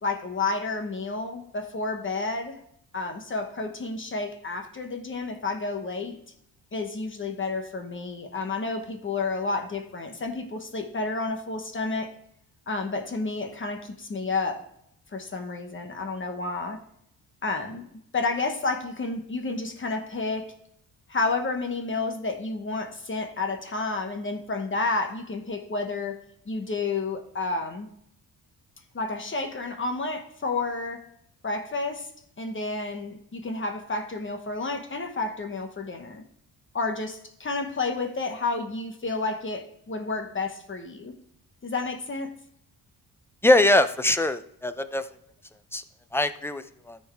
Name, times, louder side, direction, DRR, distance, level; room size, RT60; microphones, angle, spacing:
voice 1, 0.0-2.6 2.9-6.2 6.7-12.1 12.7-14.6 15.1-16.8 17.4-17.9 18.1-20.5 21.1-27.9 28.9-31.1 31.4-32.1 32.4-36.2 36.7-41.1 41.6-42.4, left 3 dB, 35° left, 4 dB, 1.1 m, -30 dB
voice 2, 43.4-45.0 45.7-45.8 46.1-47.0, left 1 dB, 5° left, 10 dB, 0.5 m, -22 dB
13.5 x 4.6 x 3.5 m, 0.71 s
cardioid pair, 110°, 36 cm